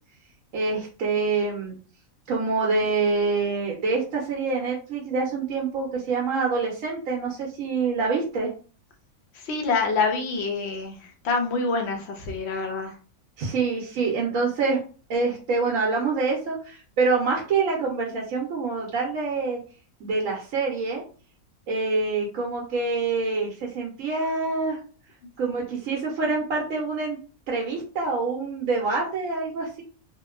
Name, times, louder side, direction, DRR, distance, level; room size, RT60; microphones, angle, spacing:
voice 1, 0.5-1.7 2.3-8.5 13.4-14.8 15.1-19.6 20.0-21.0 21.7-24.8 25.4-27.2 27.5-29.8, right 4 dB, 65° right, -2 dB, 0.9 m, -26 dB
voice 2, 9.4-11.0 11.2-12.9, left 4 dB, 65° left, 3 dB, 0.7 m, -26 dB
2.8 x 2.1 x 2.3 m, 0.38 s
omnidirectional pair, 1.6 m